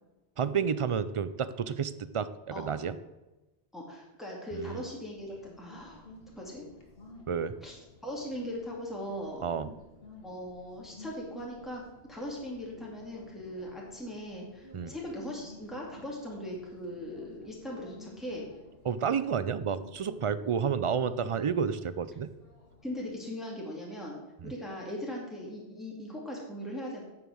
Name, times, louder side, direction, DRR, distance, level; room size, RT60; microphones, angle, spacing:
voice 1, 0.4-2.3 2.6-3.0 4.5-4.8 7.3-7.5 9.4-9.7 14.7-14.9 18.8-22.3 24.4-24.5, right 7 dB, 60° right, 14 dB, 0.3 m, -30 dB
voice 2, 3.7-6.1 6.4-6.6 7.6-9.4 10.2-11.8 12.1-18.5 22.8-24.2 24.4-27.0, equal, ahead, -3 dB, 2.3 m, -39 dB
sound 1, 5.2-23.0, left 2 dB, 60° left, 2.0 m, -54 dB
9.0 x 7.1 x 6.3 m, 1.1 s
omnidirectional pair, 1.1 m